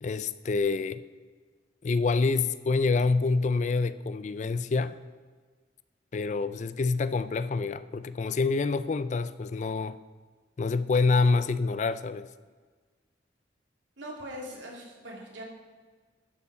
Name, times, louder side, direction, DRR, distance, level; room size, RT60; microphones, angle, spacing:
voice 1, 0.0-1.0 1.8-5.0 6.1-10.0 10.6-12.3, left 4 dB, 40° left, 14 dB, 0.4 m, -27 dB
voice 2, 14.0-15.4, equal, 85° right, -1 dB, 2.5 m, -41 dB
12.5 x 7.0 x 4.8 m, 1.5 s
head